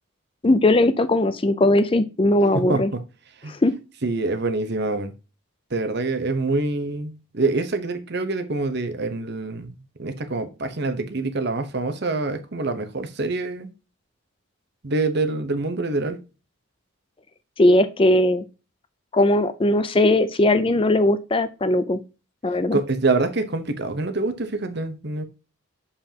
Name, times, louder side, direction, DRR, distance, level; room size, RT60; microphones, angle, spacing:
voice 1, 0.4-2.9 3.5-3.7 17.6-18.4 19.1-22.0 22.4-22.8, left 1 dB, 25° left, 0.4 m, -19 dB
voice 2, 2.5-3.0 3.4-3.5 4.0-5.1 5.7-13.7 14.8-16.2 22.7-25.2, right 3 dB, 50° right, 0.9 m, -25 dB
6.8 x 5.7 x 2.8 m
head